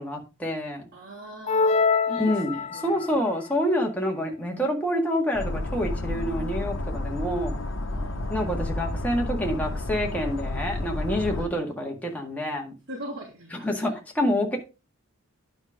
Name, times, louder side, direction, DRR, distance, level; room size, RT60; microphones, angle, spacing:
voice 1, 0.0-0.8 2.2-7.6 8.3-12.7 13.5-14.6, equal, 5° left, 1.9 m, -27 dB
voice 2, 0.9-3.2 7.9-8.4 10.2-10.4 11.2-11.5 12.9-14.0, right 1 dB, 55° right, 3.4 m, -41 dB
sound 1, 1.5-3.1, left 4 dB, 30° left, 0.4 m, -24 dB
sound 2, 5.3-11.4, left 1 dB, 65° left, 1.1 m, -31 dB
9.9 x 5.2 x 4.9 m
head